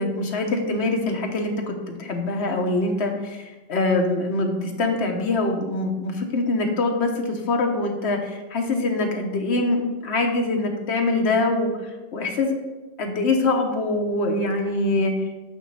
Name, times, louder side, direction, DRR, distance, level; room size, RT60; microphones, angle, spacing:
voice 1, 0.0-3.4 3.7-11.7 12.1-12.6 13.0-15.3, left 2 dB, 65° left, 3 dB, 1.2 m, -24 dB
8.8 x 3.1 x 5.6 m, 1.1 s
omnidirectional pair, 1.2 m